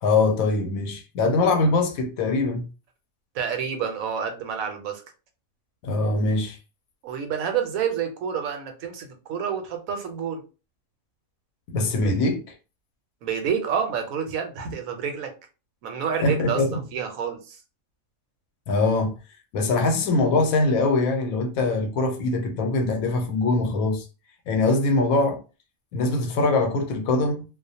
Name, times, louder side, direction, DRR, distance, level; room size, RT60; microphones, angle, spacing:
voice 1, 0.0-2.7 5.8-6.6 11.7-12.4 16.2-16.8 18.7-19.2 19.5-24.0 24.5-25.4 25.9-27.4, left 3 dB, 85° left, 1.0 m, -22 dB
voice 2, 3.3-5.0 7.0-10.4 13.2-15.3 15.8-17.6, right 7 dB, 85° right, 1.0 m, -28 dB
2.4 x 2.0 x 2.7 m
omnidirectional pair, 1.4 m